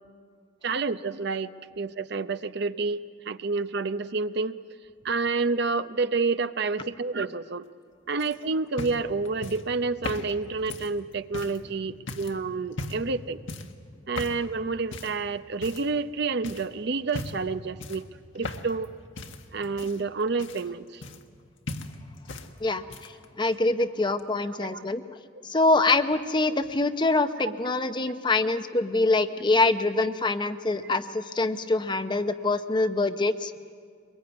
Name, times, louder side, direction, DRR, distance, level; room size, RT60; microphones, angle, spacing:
voice 1, 0.6-4.6 5.0-7.7 8.1-13.4 14.1-18.1 18.3-18.9 19.5-21.0 24.6-24.8 27.4-27.5, right 4 dB, 55° right, 12 dB, 0.7 m, -29 dB
sound 1, 8.2-11.6 12.1-12.4 12.7-13.1 13.5-13.8 14.1-14.4 14.9-15.2 15.6-16.1 16.4-16.7 17.1-17.5 17.8-18.9 19.1-21.4 21.7-22.5 22.8-23.2 24.2-24.3, left 2 dB, 75° left, 1.6 m, -38 dB
voice 2, 22.6-25.2 25.4-33.5, left 2 dB, 25° left, 10 dB, 0.7 m, -25 dB
23.0 x 21.5 x 9.5 m, 2.2 s
head